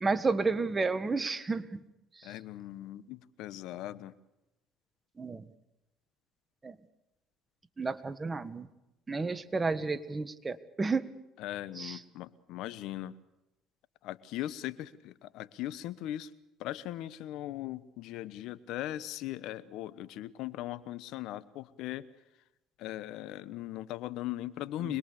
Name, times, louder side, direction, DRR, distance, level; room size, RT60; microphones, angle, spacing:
voice 1, 0.0-1.8 5.2-5.5 6.6-6.7 7.8-8.7 9.1-11.1 11.8-12.0 24.8-24.9, right 4 dB, 25° right, 12 dB, 1.5 m, -31 dB
voice 2, 2.2-4.1 11.4-13.1 14.0-16.3 16.6-22.1 22.8-25.0, left 14 dB, 70° left, 15 dB, 1.1 m, -39 dB
25.5 x 21.0 x 6.8 m, 0.91 s
supercardioid pair, 85°, 0 cm